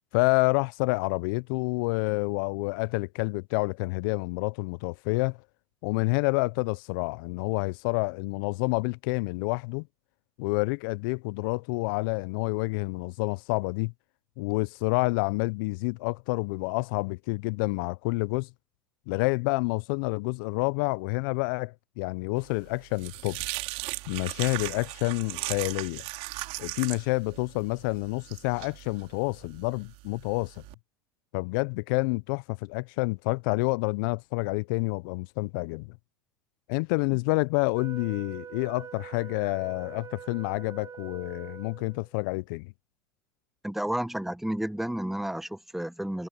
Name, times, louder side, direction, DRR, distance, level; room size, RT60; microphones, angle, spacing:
voice 1, 0.1-5.4 5.8-9.9 10.4-13.9 14.4-18.5 19.1-23.4 24.1-26.0 26.6-30.5 31.3-36.0 36.7-42.7, left 27 dB, 65° left, 0.7 m, -28 dB
sound 1, 22.5-30.7, right 22 dB, 55° right, 3.9 m, -38 dB
Wind instrument woodwind instrument, 37.7-42.1, right 8 dB, 30° right, 1.7 m, -44 dB
voice 2, 43.6-46.3, right 1 dB, ahead, 1.1 m, -31 dB
hypercardioid pair, 90°, 12 cm